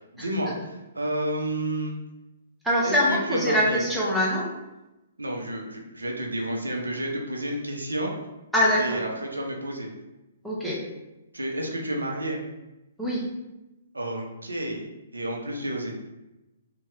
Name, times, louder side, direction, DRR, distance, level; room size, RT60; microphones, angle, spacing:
voice 1, 0.1-1.9 2.8-3.8 5.2-8.1 8.7-9.9 11.3-12.4 13.9-16.0, right 1 dB, 85° right, 1 dB, 0.6 m, -30 dB
voice 2, 2.6-4.5 8.5-9.0 10.4-10.8 13.0-13.2, equal, ahead, -6 dB, 0.8 m, -23 dB
2.7 x 2.3 x 3.4 m, 0.99 s
figure-of-eight pair, 125°, 0 cm